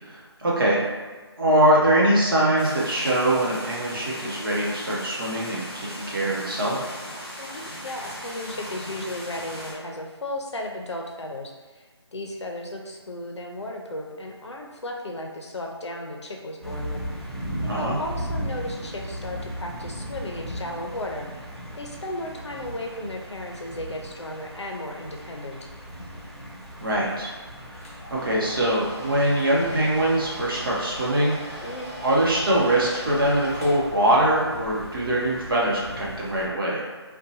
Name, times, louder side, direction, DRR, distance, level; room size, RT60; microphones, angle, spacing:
voice 1, 0.0-0.8 1.4-6.8 17.7-18.0 26.8-27.3 27.7-27.8 28.1-31.6 32.0-36.8, right 1 dB, 55° right, -5 dB, 0.8 m, -23 dB
sound 1, 2.6-9.7, equal, 15° left, 1.2 m, -38 dB
voice 2, 7.4-11.9 12.1-17.0 17.6-21.3 21.7-25.7 31.6-31.9, left 1 dB, 80° left, 1 dB, 0.5 m, -35 dB
sound 2, 16.6-36.5, equal, 25° right, 1.0 m, -38 dB
Domestic sounds home sounds, 27.8-34.5, right 1 dB, 30° left, 0.7 m, -40 dB
2.7 x 2.2 x 2.6 m, 1.3 s
figure-of-eight pair, 160°, 14 cm